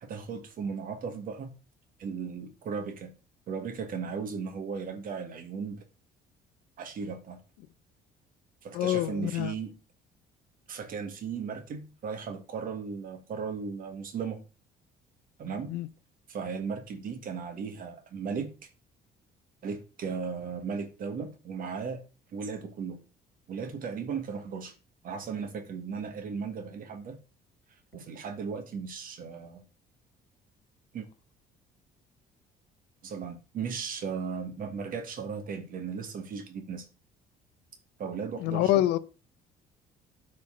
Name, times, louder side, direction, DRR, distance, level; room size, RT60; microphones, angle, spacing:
voice 1, 0.0-1.5 2.0-3.1 3.5-5.8 6.8-7.4 8.6-9.8 10.7-14.4 15.4-15.8 16.3-18.5 19.6-22.0 22.3-23.0 23.5-24.7 25.0-27.2 27.9-29.6 30.9-31.0 33.0-36.8 38.0-38.8, right 5 dB, 55° right, 1.7 m, -36 dB
voice 2, 8.7-9.5 15.7-15.9 38.4-39.0, left 14 dB, 85° left, 0.6 m, -26 dB
12.5 x 4.3 x 3.7 m
cardioid pair, 110°, 17 cm